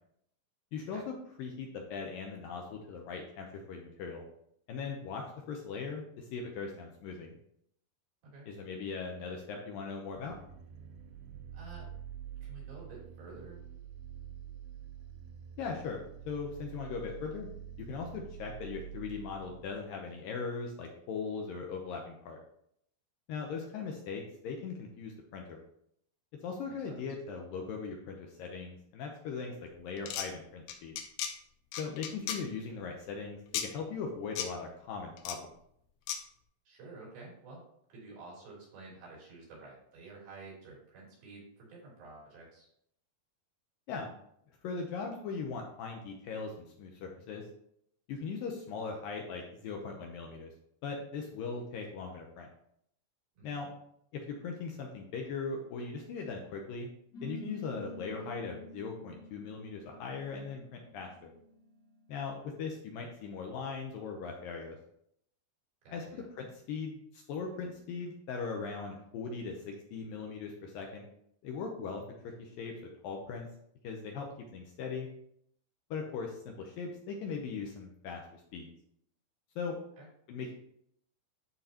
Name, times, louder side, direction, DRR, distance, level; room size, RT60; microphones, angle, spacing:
voice 1, 0.7-4.2 4.7-7.3 8.5-10.3 15.6-17.5 17.8-22.4 23.3-25.6 26.4-31.0 31.8-35.5 43.9-44.1 44.6-47.4 48.1-50.5 50.8-52.5 53.4-53.7 54.1-56.9 57.2-61.3 62.1-64.8 65.9-71.1 71.4-72.0 72.4-72.7 73.0-73.5 73.8-74.3 74.5-75.1 75.9-78.7 79.6-79.8 80.3-80.5, left 5 dB, 75° left, 1 dB, 2.3 m, -39 dB
sound 1, 10.1-19.8, right 9 dB, 80° right, 1.9 m, -47 dB
voice 2, 11.5-11.9 12.4-13.6 26.7-27.0 36.7-37.6 37.9-42.7 53.4-53.7 65.8-66.3 80.0-80.1, right 3 dB, 65° right, -5 dB, 5.2 m, -50 dB
sound 2, 30.0-30.3 30.7-31.3 31.7-32.4 33.5-33.7 34.4-34.5 35.2-35.4 36.1-36.2, left 9 dB, 90° left, 2.8 m, -35 dB
sound 3, 57.1-62.1, left 1 dB, 30° left, 2.0 m, -48 dB
12.0 x 4.6 x 2.9 m, 0.71 s
omnidirectional pair, 4.6 m